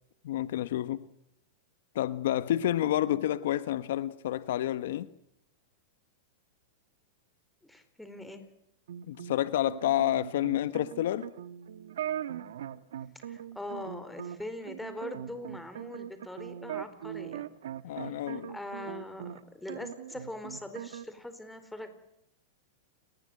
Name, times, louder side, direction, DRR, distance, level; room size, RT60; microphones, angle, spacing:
voice 1, 0.2-1.0 1.9-5.1 9.1-11.3 17.8-18.5, left 13 dB, 70° left, 1.2 m, -29 dB
voice 2, 7.6-8.5 13.1-17.5 17.9-21.9, left 1 dB, 5° left, 4.4 m, -42 dB
sound 1, 8.9-19.4 19.7-21.0, right 10 dB, 80° right, 1.4 m, -40 dB
29.0 x 20.5 x 8.0 m
hypercardioid pair, 125°, 0 cm